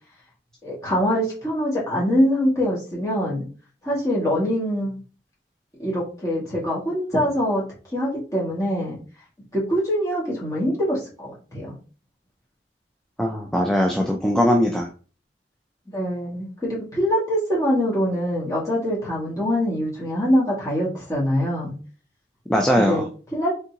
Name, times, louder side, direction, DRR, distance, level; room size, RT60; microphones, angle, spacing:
voice 1, 0.6-3.4 3.8-5.0 5.8-7.6 7.9-9.0 9.5-11.7 15.9-21.7 22.7-23.0 23.3-23.5, equal, 20° left, -6 dB, 1.8 m, -24 dB
voice 2, 13.2-14.9 22.5-23.0, equal, 5° left, 1 dB, 0.4 m, -20 dB
4.0 x 3.6 x 2.8 m, 0.38 s
head